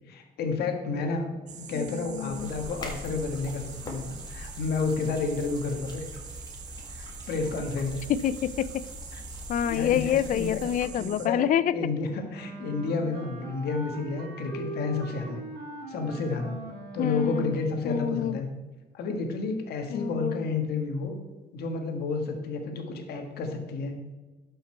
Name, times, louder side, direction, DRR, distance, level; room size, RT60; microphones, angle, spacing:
voice 1, 0.1-6.0 6.9-8.0 9.1-9.2 9.6-10.6 10.9-11.4 11.7-15.4 15.9-16.6 16.9-18.5 18.9-21.2 21.5-24.0, left 4 dB, 70° left, 4 dB, 1.6 m, -31 dB
sound 1, 1.5-11.3, right 8 dB, 45° right, 0.8 m, -45 dB
voice 2, 1.7-2.5 8.1-8.8 9.5-11.7 17.0-17.5 17.9-18.4 19.9-20.4, left 10 dB, 50° left, 17 dB, 0.5 m, -27 dB
sound 2, 2.3-10.9, left 1 dB, 25° left, 1.9 m, -42 dB
Wind instrument woodwind instrument, 12.3-17.8, right 2 dB, 90° right, 1.6 m, -41 dB
12.0 x 5.6 x 4.5 m, 1.2 s
cardioid pair, 110°, 17 cm